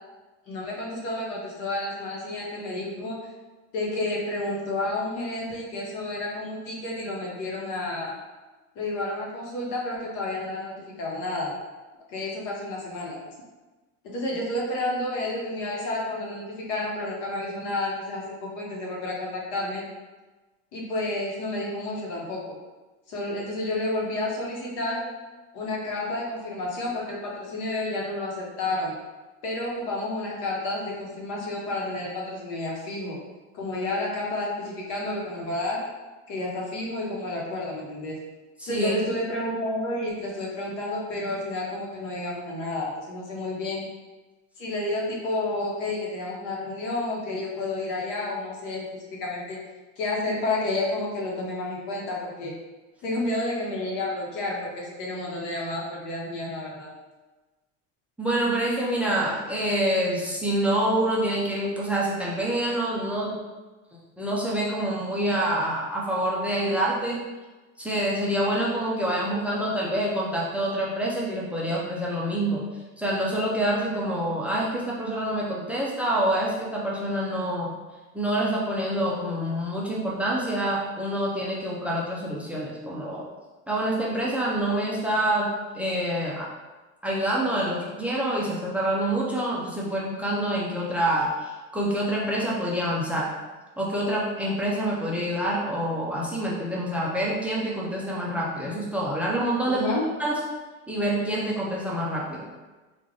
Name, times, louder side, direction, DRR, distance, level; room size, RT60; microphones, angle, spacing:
voice 1, 0.5-3.2 3.7-8.1 8.7-11.5 12.1-13.2 14.0-19.8 20.7-22.6 23.1-25.0 25.5-28.9 29.4-33.2 33.5-35.8 36.3-38.2 38.6-43.9 44.6-48.8 49.2-49.6 50.0-52.5 53.0-56.9 99.7-100.1, left 2 dB, 55° left, -3 dB, 1.0 m, -30 dB
voice 2, 38.6-39.0 58.2-63.4 64.2-67.2 67.8-72.7 73.0-77.7 78.1-83.3 83.7-86.5 87.0-93.3 93.8-99.9 100.2-100.4 100.9-102.5, right 1 dB, 5° right, -5 dB, 0.3 m, -26 dB
3.3 x 2.4 x 3.6 m, 1.2 s
cardioid pair, 145°, 35 cm